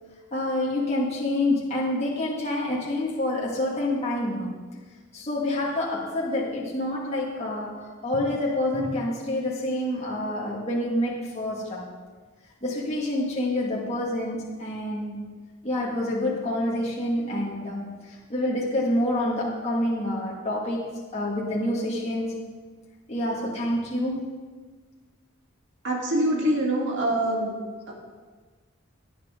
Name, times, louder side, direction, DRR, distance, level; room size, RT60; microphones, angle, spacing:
voice 1, 0.3-4.5 5.1-11.9 12.6-15.3 15.6-22.3 23.1-24.3, left 1 dB, 30° left, -5 dB, 2.1 m, -27 dB
voice 2, 25.8-27.5 27.9-28.0, right 1 dB, 55° right, -3 dB, 3.1 m, -24 dB
17.5 x 10.5 x 3.8 m, 1.4 s
head